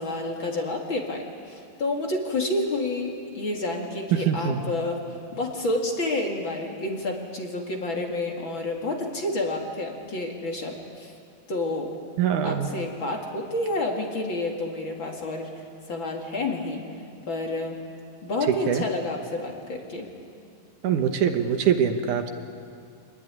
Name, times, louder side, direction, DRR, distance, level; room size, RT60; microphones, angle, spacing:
voice 1, 0.0-5.0 5.3-11.1 11.5-11.9 12.4-16.8 17.3-17.8 18.2-20.1, left 2 dB, 40° left, 1 dB, 2.7 m, -29 dB
voice 2, 4.1-4.6 12.2-12.7 18.5-18.8 20.8-22.3, right 8 dB, 70° right, 7 dB, 2.6 m, -23 dB
26.0 x 20.0 x 9.8 m, 2.4 s
omnidirectional pair, 3.9 m